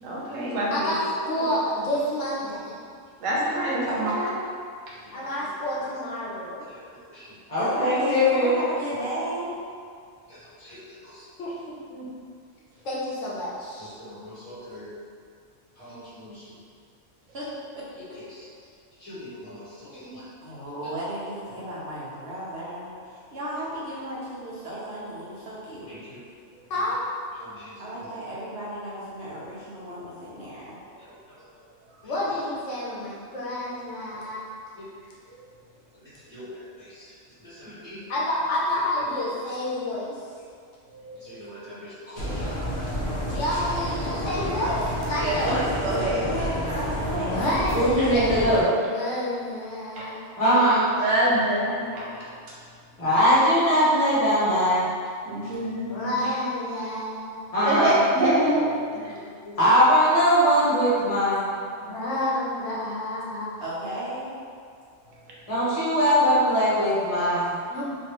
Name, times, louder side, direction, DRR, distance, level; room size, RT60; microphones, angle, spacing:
voice 1, 0.0-0.9 1.4-1.5 3.2-4.1 40.9-41.2 42.2-42.4 42.7-42.8 45.1-46.3 50.0-50.1 50.5-50.6 51.0-52.3 55.3-56.3 57.6-58.7 59.0-59.1, right 1 dB, 85° right, -6 dB, 1.2 m, -26 dB
voice 2, 0.7-2.7 5.1-6.7 11.4-12.0 12.8-13.9 19.8-20.1 26.7-27.0 32.0-34.4 38.1-40.2 43.2-45.6 47.1-50.3 53.0-53.1 55.9-57.6 61.8-63.5 67.7-67.8, left 1 dB, 75° left, -6 dB, 1.1 m, -29 dB
voice 3, 3.9-4.4 7.6-9.5 17.3-17.5 17.8-18.2 20.4-25.9 27.8-30.7 46.1-47.5 63.6-64.3, right 1 dB, 60° right, -7 dB, 0.9 m, -34 dB
voice 4, 7.5-8.6 10.6-10.8 11.0-11.2 14.0-14.9 15.8-16.4 19.0-19.9 20.1-20.2 25.9-26.2 27.5-27.8 34.8-34.9 36.3-36.5 36.9-37.0 37.4-38.0 41.2-42.5 43.2-43.3 47.7-48.6 50.4-50.9 53.0-54.8 57.5-58.0 59.1-59.2 59.4-61.5 65.5-67.6, equal, 30° left, -11 dB, 0.9 m, -23 dB
sound 1, 42.2-48.6, equal, 55° left, 0.7 m, -30 dB
3.2 x 2.6 x 2.9 m, 2.2 s
omnidirectional pair, 1.3 m